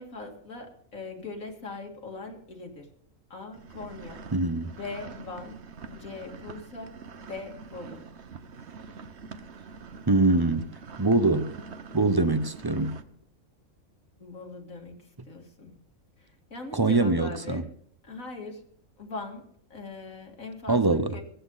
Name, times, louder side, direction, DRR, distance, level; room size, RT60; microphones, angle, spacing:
voice 1, 0.0-2.9 3.3-4.2 4.7-5.6 5.9-8.0 14.2-15.7 16.2-17.6 18.0-18.6 19.0-21.2, left 3 dB, 80° left, 2.8 m, -41 dB
sound 1, 3.5-13.0, right 5 dB, 55° right, 1.3 m, -45 dB
voice 2, 4.3-4.7 10.1-10.7 11.0-11.5 11.9-13.0 16.7-17.6 20.7-21.2, right 2 dB, 20° right, 0.7 m, -23 dB
17.0 x 14.5 x 4.0 m
omnidirectional pair, 1.4 m